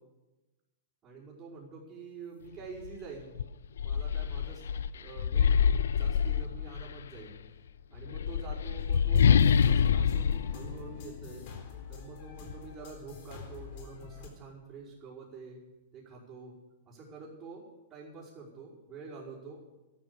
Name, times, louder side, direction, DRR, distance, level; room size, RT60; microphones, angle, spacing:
voice 1, 1.0-3.4 3.8-4.6 4.9-7.3 7.9-11.5 11.9-15.6 15.9-16.6 16.9-19.6, right 4 dB, 35° right, -8 dB, 5.4 m, -47 dB
sound 1, 2.8-3.0 3.4-7.0 7.9-11.6, left 7 dB, 80° left, 0.4 m, -26 dB
sound 2, 8.8-14.3, left 7 dB, 60° left, 3.9 m, -47 dB
13.0 x 12.5 x 7.1 m, 1.1 s
hypercardioid pair, 120°, 0 cm